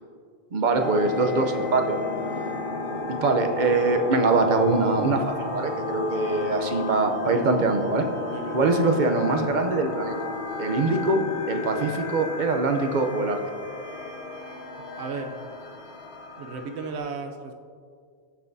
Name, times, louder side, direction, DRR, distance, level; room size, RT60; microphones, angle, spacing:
voice 1, 0.5-2.0 3.1-8.1 8.5-10.3 10.6-13.4, right 3 dB, 50° right, 5 dB, 0.8 m, -23 dB
sound 1, 0.7-17.0, left 3 dB, 80° left, 1.1 m, -33 dB
voice 2, 8.2-8.6 15.0-15.4 16.4-17.5, right 4 dB, 85° right, 5 dB, 0.9 m, -35 dB
15.0 x 5.7 x 2.7 m, 2.1 s
omnidirectional pair, 1.1 m